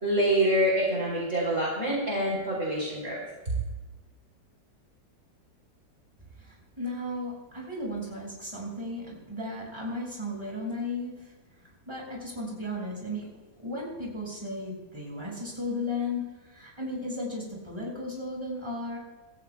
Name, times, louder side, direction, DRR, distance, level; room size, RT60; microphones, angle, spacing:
voice 1, 0.0-3.2, right 1 dB, 40° right, -4 dB, 4.1 m, -26 dB
voice 2, 6.4-11.3 11.9-19.0, left 1 dB, 15° right, -4 dB, 5.9 m, -35 dB
27.0 x 14.5 x 2.3 m, 1.1 s
omnidirectional pair, 1.9 m